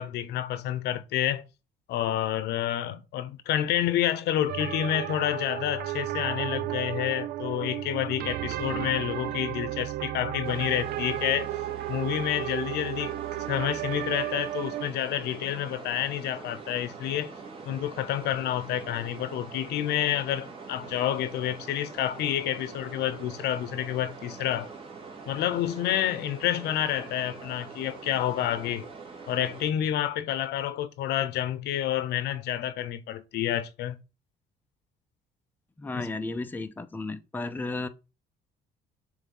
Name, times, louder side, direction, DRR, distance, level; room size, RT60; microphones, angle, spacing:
voice 1, 0.0-1.4 1.9-11.5 11.9-13.1 13.5-17.3 17.7-24.7 25.3-28.9 29.3-34.0 35.9-36.1, left 11 dB, 80° left, 0.9 m, -29 dB
sound 1, 4.5-14.9, right 14 dB, 60° right, 0.4 m, -33 dB
sound 2, 10.4-29.7, right 4 dB, 35° right, 2.1 m, -44 dB
voice 2, 35.8-37.9, left 3 dB, 10° left, 0.6 m, -33 dB
7.1 x 3.5 x 5.4 m
cardioid pair, 110°, 17 cm